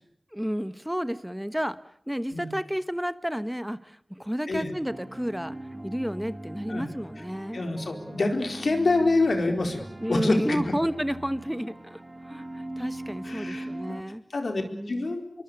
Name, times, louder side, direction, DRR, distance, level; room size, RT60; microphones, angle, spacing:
voice 1, 0.3-1.8 2.1-5.6 5.8-7.6 10.0-14.2 14.7-15.1, equal, 5° right, 13 dB, 1.1 m, -31 dB
sound 1, 4.9-14.0, right 1 dB, 25° right, 2.7 m, -40 dB
voice 2, 7.5-9.8 10.1-10.6 13.2-14.0 14.3-15.2, left 2 dB, 85° left, 5 dB, 4.3 m, -26 dB
27.0 x 23.0 x 6.9 m, 0.67 s
wide cardioid pair, 65°, 0 cm